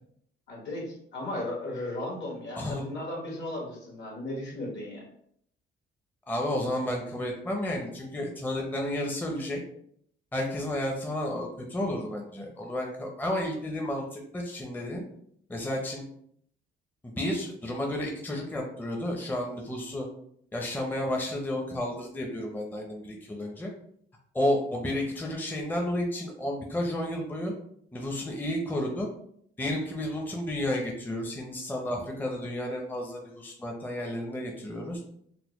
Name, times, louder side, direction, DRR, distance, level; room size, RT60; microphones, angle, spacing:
voice 1, 0.5-5.0, left 1 dB, 65° left, -2 dB, 1.5 m, -36 dB
voice 2, 2.6-2.9 6.3-9.6 10.3-15.0 15.5-16.0 17.0-20.1 20.5-23.7 24.3-27.5 27.9-29.1 29.6-35.0, left 1 dB, 10° left, 0 dB, 0.6 m, -32 dB
4.0 x 2.1 x 2.9 m, 0.67 s
cardioid pair, 90°, 20 cm